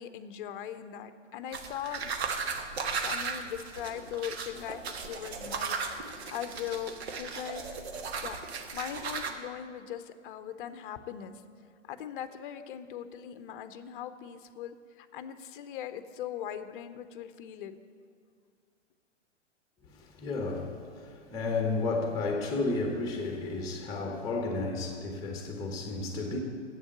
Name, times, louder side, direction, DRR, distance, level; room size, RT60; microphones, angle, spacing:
voice 1, 0.0-2.1 3.0-7.6 8.2-8.4 8.7-11.3 11.8-17.8, left 10 dB, 45° left, 11 dB, 0.7 m, -40 dB
sound 1, 1.5-9.3, right 5 dB, 60° right, 1.1 m, -36 dB
voice 2, 19.9-26.4, left 3 dB, 10° left, 1 dB, 1.1 m, -32 dB
8.1 x 7.1 x 8.6 m, 2.1 s
figure-of-eight pair, 110°, 37 cm